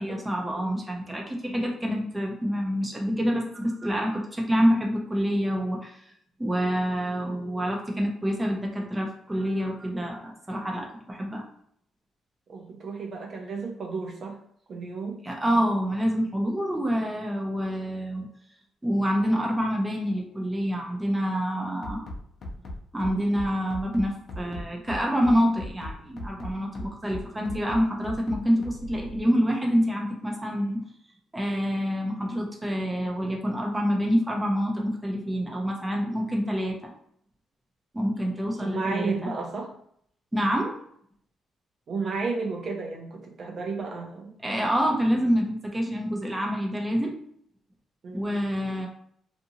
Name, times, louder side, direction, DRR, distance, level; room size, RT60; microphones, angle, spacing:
voice 1, 0.0-6.1 6.4-11.4 15.2-18.3 18.8-22.1 22.9-30.8 31.3-36.9 37.9-39.3 40.3-40.7 44.4-47.1 48.1-48.9, equal, 10° right, 0 dB, 0.6 m, -27 dB
voice 2, 12.5-14.4 14.7-15.2 38.6-39.7 41.9-44.3 48.0-48.4, right 4 dB, 55° right, 0 dB, 0.6 m, -33 dB
Bass drum, 21.8-29.2, left 1 dB, 60° left, 0.7 m, -37 dB
2.6 x 2.6 x 2.7 m, 0.66 s
cardioid pair, 90°, 0 cm